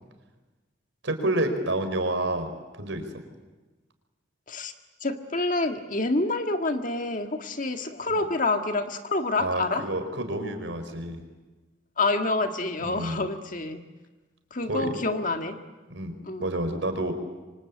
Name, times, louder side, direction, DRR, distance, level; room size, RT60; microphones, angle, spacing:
voice 1, 1.0-2.5 2.8-3.0 8.1-8.2 9.4-11.2 12.8-13.2 14.7-14.9 15.9-17.1, right 1 dB, 70° right, 7 dB, 4.4 m, -29 dB
voice 2, 5.0-9.9 12.0-13.8 14.5-15.6 16.3-16.5, left 2 dB, 40° left, 6 dB, 1.7 m, -27 dB
28.0 x 25.0 x 8.5 m, 1.2 s
head